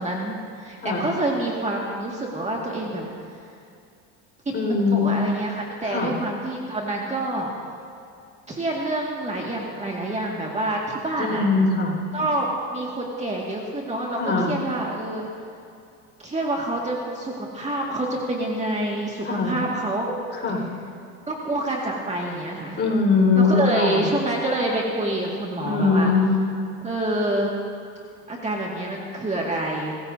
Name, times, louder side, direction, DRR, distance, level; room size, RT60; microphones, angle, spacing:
voice 1, 0.0-3.1 4.5-7.5 8.5-11.5 12.1-15.3 16.2-20.1 21.3-22.8 23.4-26.1 26.8-27.5 28.3-29.9, right 1 dB, 20° right, -2 dB, 2.0 m, -27 dB
voice 2, 4.5-5.1 5.8-6.1 11.2-12.0 14.2-14.5 19.2-19.6 20.3-20.6 22.8-24.1 25.6-26.4, left 4 dB, 30° left, -1 dB, 4.6 m, -21 dB
29.0 x 15.0 x 2.7 m, 2.5 s
supercardioid pair, 105°, 35 cm